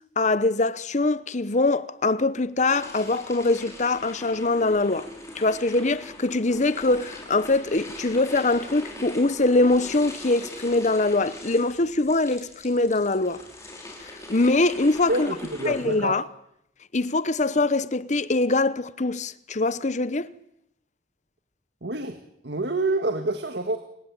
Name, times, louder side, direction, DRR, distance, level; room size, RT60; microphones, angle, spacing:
voice 1, 0.2-5.1 5.3-13.4 14.3-15.3 15.7-16.2 16.9-20.3, left 2 dB, 40° left, 1.0 m, -23 dB
sound 1, 2.7-16.0, left 1 dB, 15° left, 5.7 m, -41 dB
voice 2, 15.1-16.2 21.8-22.2 22.4-23.8, right 2 dB, 65° right, 1.9 m, -27 dB
29.0 x 17.5 x 8.9 m
head